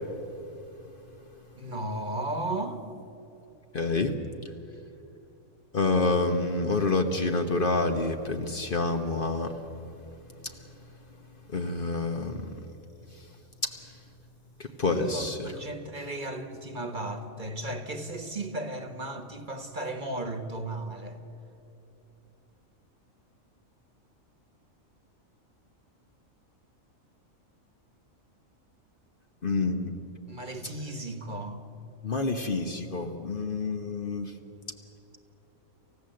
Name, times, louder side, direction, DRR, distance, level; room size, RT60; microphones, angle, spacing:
voice 1, 1.6-2.8 14.8-21.2 30.3-31.6, right 2 dB, 35° right, 7 dB, 1.4 m, -35 dB
voice 2, 3.7-4.2 5.7-9.6 11.5-12.5 13.6-13.7 14.6-15.4 29.4-29.9 30.6-30.7 32.0-34.3, left 3 dB, 40° left, 5 dB, 1.2 m, -28 dB
28.5 x 15.5 x 7.8 m, 2.9 s
omnidirectional pair, 1.4 m